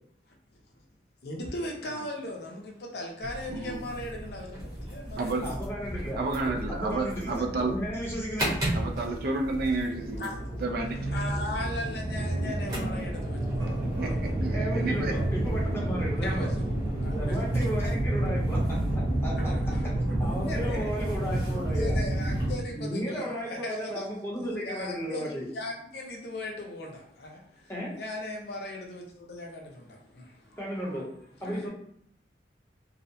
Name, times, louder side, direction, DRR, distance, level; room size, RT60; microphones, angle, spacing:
voice 1, 1.2-5.4 10.2-14.5 16.2-17.6 19.4-20.9 21.3-24.1 24.4-30.6 31.4-31.7, left 1 dB, 60° left, 0.5 m, -39 dB
sound 1, 3.2-22.5, right 1 dB, 20° right, 0.8 m, -30 dB
voice 2, 3.5-3.8 5.2-5.5 6.2-7.7 8.7-11.1 12.1-13.0 13.8-15.1 15.7-16.2, right 3 dB, 55° right, 0.3 m, -32 dB
voice 3, 5.4-6.2 6.7-8.6 14.5-16.5 17.0-18.8 19.2-19.5 20.2-22.0 22.7-25.5 27.7-27.9 30.6-31.1 31.4-31.7, equal, 15° left, 0.7 m, -34 dB
sound 2, 13.5-21.7, equal, 85° right, 1.0 m, -47 dB
2.6 x 2.0 x 2.6 m
head